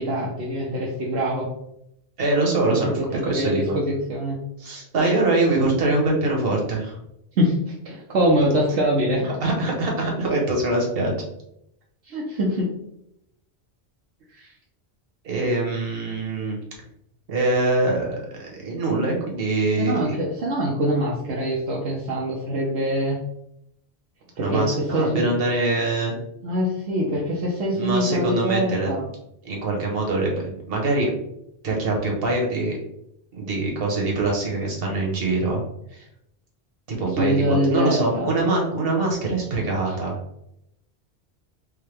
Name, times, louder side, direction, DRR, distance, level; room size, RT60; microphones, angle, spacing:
voice 1, 0.0-1.5 2.7-4.4 7.4-9.3 12.0-12.7 14.3-14.5 19.8-23.2 24.4-25.3 26.4-29.1 37.2-38.3, equal, 80° right, -4 dB, 1.0 m, -24 dB
voice 2, 2.2-3.8 4.6-7.0 9.2-11.2 15.2-16.6 17.3-20.2 24.4-26.2 27.7-28.9 29.4-31.1 31.6-32.8 33.3-35.6 35.9-36.1 36.9-40.2, right 2 dB, 65° right, -1 dB, 1.3 m, -24 dB
4.8 x 2.2 x 3.3 m, 0.79 s
omnidirectional pair, 1.1 m